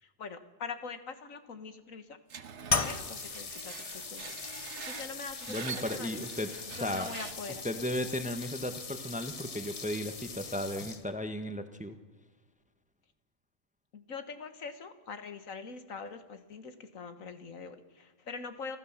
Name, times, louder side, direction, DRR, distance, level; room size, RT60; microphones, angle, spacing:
voice 1, 0.0-2.2 2.7-6.2 6.7-7.8 13.9-18.8, left 5 dB, 80° left, 9 dB, 1.8 m, -43 dB
Screech, 2.3-7.6, right 7 dB, 60° right, 1.3 m, -45 dB
sound 1, 2.7-11.3, left 4 dB, 30° left, 0.8 m, -38 dB
voice 2, 5.5-7.1 7.6-11.9, left 1 dB, 5° right, 9 dB, 1.0 m, -35 dB
29.0 x 12.5 x 7.2 m, 1.3 s
omnidirectional pair, 1.4 m